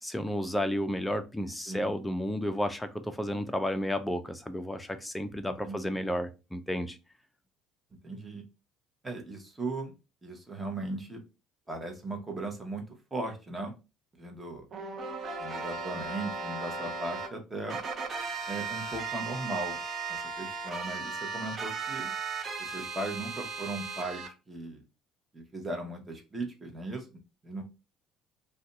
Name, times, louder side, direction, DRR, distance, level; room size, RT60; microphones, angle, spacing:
voice 1, 0.0-7.0, equal, 5° left, 7 dB, 0.5 m, -32 dB
voice 2, 5.6-5.9 8.0-8.4 9.0-9.9 10.2-11.2 11.7-13.7 14.2-14.7 15.4-17.8 18.5-19.8 20.1-22.1 22.6-24.8 25.3-27.1 27.4-27.6, right 2 dB, 15° right, 2 dB, 1.0 m, -37 dB
sound 1, 14.7-17.3 17.7-24.3, right 4 dB, 40° right, 0.7 m, -36 dB
2.6 x 2.2 x 3.9 m, 0.29 s
cardioid pair, 110°, 0 cm